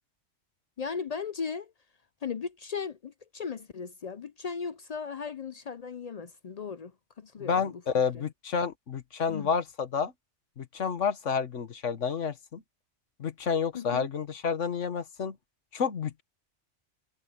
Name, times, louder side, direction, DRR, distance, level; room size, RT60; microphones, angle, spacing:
voice 1, 0.8-1.7 2.2-6.9 7.2-7.8 8.1-8.2 9.3-9.5 13.7-14.1, left 6 dB, 50° left, 0.4 m, -37 dB
voice 2, 7.4-10.1 10.6-12.6 13.2-15.4 15.7-16.2, left 6 dB, 90° left, 1.7 m, -30 dB
omnidirectional pair, 1.2 m